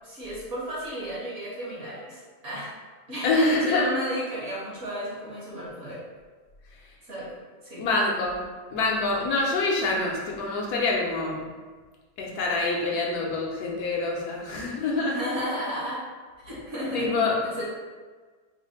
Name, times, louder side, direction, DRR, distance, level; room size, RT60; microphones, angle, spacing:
voice 1, 0.0-2.7 3.1-6.0 7.0-7.3 7.6-7.9 15.0-16.1 16.4-17.1 17.4-17.7, equal, 55° right, -7 dB, 1.1 m, -33 dB
voice 2, 3.2-3.9 7.8-11.5 12.2-15.2 16.9-17.4, left 3 dB, 75° left, -2 dB, 1.1 m, -26 dB
3.2 x 2.0 x 3.8 m, 1.4 s
omnidirectional pair, 1.8 m